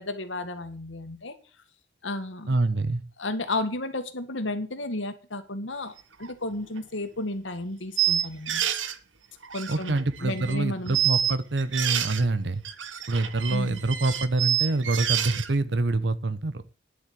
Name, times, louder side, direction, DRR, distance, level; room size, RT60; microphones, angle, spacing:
voice 1, 0.0-1.4 2.0-2.6 3.2-8.6 9.5-11.0 13.5-13.8, left 2 dB, 85° left, 9 dB, 1.9 m, -33 dB
voice 2, 2.5-3.0 9.7-12.6 13.1-16.5, right 2 dB, 65° right, 14 dB, 0.8 m, -26 dB
sound 1, 6.2-6.3 6.8-6.9 8.0-8.9 9.4-10.6 10.9-12.2 12.6-15.5, right 10 dB, 85° right, 1.2 m, -27 dB
10.5 x 7.3 x 8.3 m, 0.36 s
head